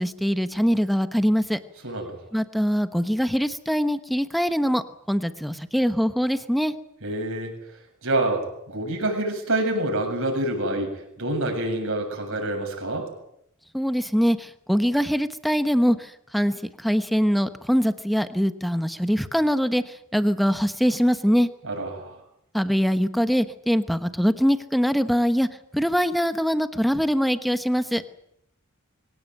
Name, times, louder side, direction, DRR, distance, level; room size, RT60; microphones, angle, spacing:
voice 1, 0.0-1.6 2.3-4.8 5.1-6.7 13.7-16.0 16.3-19.8 20.1-21.5 22.5-25.5 25.7-28.0, equal, ahead, 10 dB, 1.1 m, -23 dB
voice 2, 1.8-2.2 7.0-7.5 8.0-10.9 11.2-13.1 21.6-22.2, right 1 dB, 65° right, 2 dB, 7.6 m, -27 dB
24.0 x 17.5 x 9.3 m, 0.77 s
head